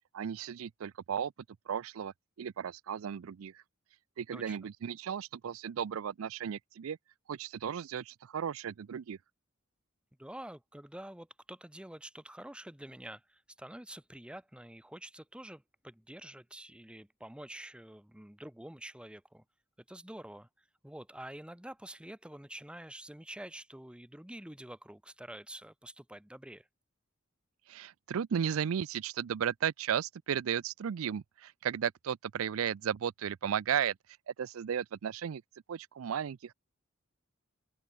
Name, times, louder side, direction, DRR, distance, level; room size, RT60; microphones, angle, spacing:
voice 1, 0.1-1.3 1.7-3.6 4.2-7.0 7.3-9.2 27.7-34.0 34.3-35.4 35.7-36.5, right 8 dB, 90° right, 0.4 m, -35 dB
voice 2, 10.2-19.4 19.9-26.7, right 1 dB, 5° right, 1.0 m, -47 dB
open air
head